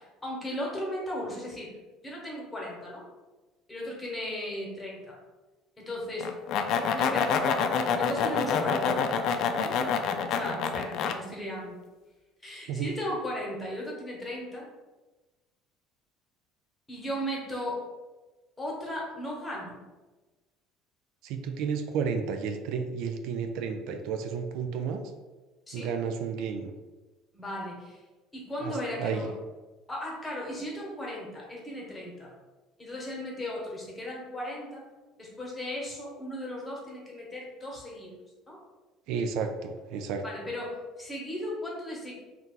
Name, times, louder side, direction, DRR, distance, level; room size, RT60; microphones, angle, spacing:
voice 1, 0.0-1.7 2.0-3.0 3.7-5.2 5.8-6.3 6.9-7.4 7.9-9.1 9.6-9.7 10.3-11.8 12.4-14.7 16.9-17.8 18.6-19.8 25.7-25.9 27.3-28.0 28.3-29.3 29.9-32.3 32.8-34.8 35.2-38.1 38.5-38.6 40.2-42.1, left 1 dB, 15° left, -3 dB, 1.1 m, -36 dB
sound 1, 6.2-11.1, left 6 dB, 60° left, 0.3 m, -27 dB
voice 2, 21.2-25.0 25.7-26.7 28.6-29.3 39.1-40.2, right 6 dB, 75° right, 6 dB, 0.3 m, -32 dB
2.8 x 2.4 x 3.6 m, 1.2 s
supercardioid pair, 105°, 0 cm